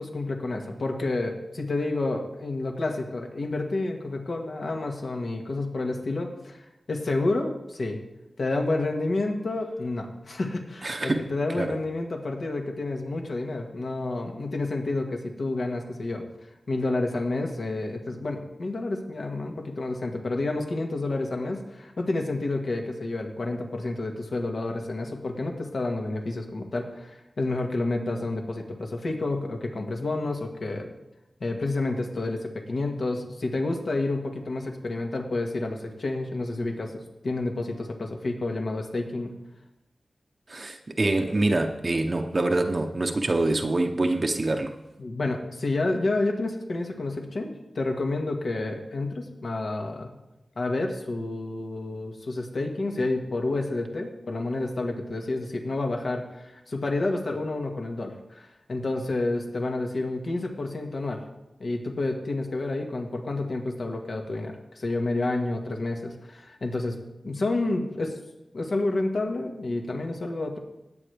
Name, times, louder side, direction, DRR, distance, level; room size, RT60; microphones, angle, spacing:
voice 1, 0.0-8.0 8.4-16.3 16.7-30.9 31.4-36.9 37.2-39.3 45.0-50.1 50.6-61.2 61.6-68.2 68.5-70.6, left 2 dB, 65° left, 2 dB, 1.8 m, -29 dB
voice 2, 10.8-11.3 11.6-11.7 40.5-44.7, right 2 dB, 45° right, 4 dB, 0.8 m, -25 dB
18.5 x 8.2 x 3.5 m, 0.95 s
wide cardioid pair, 85°, 0 cm